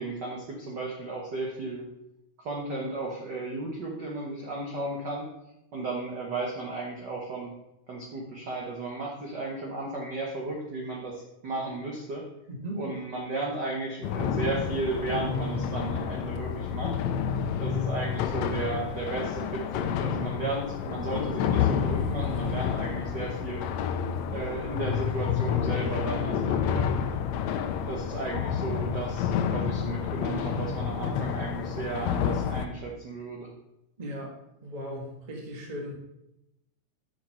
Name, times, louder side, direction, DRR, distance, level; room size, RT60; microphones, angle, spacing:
voice 1, 0.0-1.9 2.4-5.3 5.7-7.5 7.9-12.3 12.8-17.0 17.6-23.7 24.3-26.9 27.9-33.5, right 3 dB, 70° right, -1 dB, 1.0 m, -34 dB
voice 2, 12.5-12.9 34.0-34.4 34.6-35.9, equal, 35° right, 0 dB, 0.6 m, -37 dB
sound 1, 14.0-32.7, left 8 dB, 80° left, 1.6 m, -29 dB
6.5 x 6.5 x 5.8 m, 0.88 s
omnidirectional pair, 3.7 m